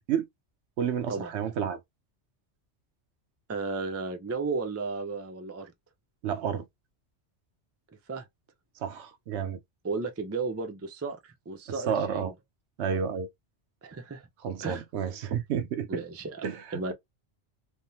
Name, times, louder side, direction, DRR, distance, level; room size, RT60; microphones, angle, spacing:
voice 1, 0.8-1.8 6.2-6.7 8.8-9.6 11.9-12.3 12.8-13.3 14.4-16.0 16.4-16.9, right 7 dB, 75° right, 0.8 m, -30 dB
voice 2, 3.5-5.7 8.1-8.3 9.8-12.3 13.8-14.3 14.6-14.8 15.9-16.9, right 4 dB, 25° right, 0.3 m, -34 dB
3.4 x 2.0 x 2.7 m
omnidirectional pair, 1.2 m